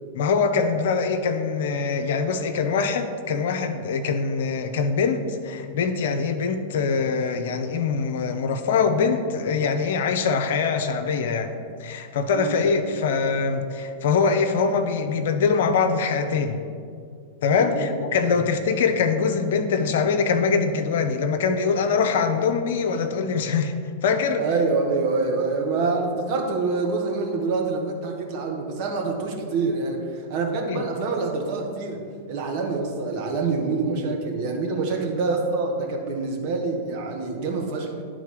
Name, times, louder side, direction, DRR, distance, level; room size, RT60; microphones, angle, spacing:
voice 1, 0.1-16.6 17.4-23.7 24.0-24.5 30.7-30.8, left 5 dB, 65° left, 6 dB, 0.6 m, -23 dB
voice 2, 12.3-12.7 17.5-18.4 24.4-37.9, right 3 dB, 50° right, 1 dB, 1.4 m, -26 dB
10.5 x 3.7 x 4.9 m, 2.3 s
hypercardioid pair, 100°, 0 cm